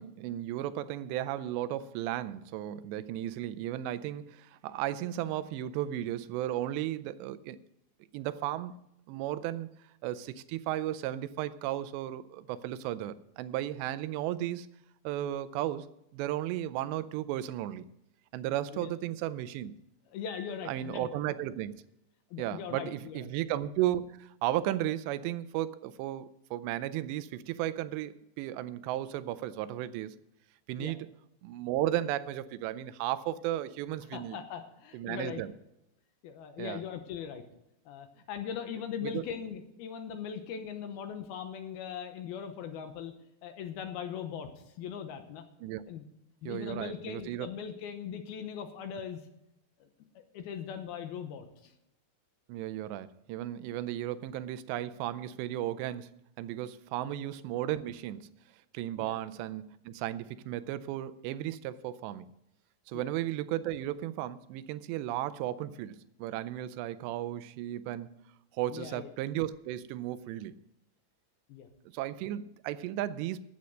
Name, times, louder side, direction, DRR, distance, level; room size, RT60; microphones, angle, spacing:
voice 1, 0.0-7.6 8.1-8.8 9.1-9.7 10.0-14.7 15.0-15.9 16.1-17.9 18.3-19.7 20.7-21.8 22.4-30.1 30.7-31.0 31.4-34.4 34.9-35.5 36.6-36.8 39.0-39.2 45.6-45.8 46.5-47.5 52.5-56.1 56.4-58.3 58.7-62.3 62.9-68.1 68.6-70.6 71.9-73.4, right 13 dB, 85° right, 15 dB, 2.8 m, -34 dB
voice 2, 20.1-21.1 22.3-23.3 30.8-30.9 34.1-35.4 36.2-37.4 37.9-43.1 43.4-45.5 45.9-46.0 46.4-49.2 49.8-49.9 50.3-51.7 57.0-57.2 59.0-59.2 62.9-63.1 68.7-69.1 71.5-71.7, left 8 dB, 75° left, 7 dB, 2.6 m, -40 dB
sound 1, 20.3-21.7, left 2 dB, 55° left, 3.6 m, -55 dB
13.0 x 8.3 x 6.4 m, 0.84 s
omnidirectional pair, 5.0 m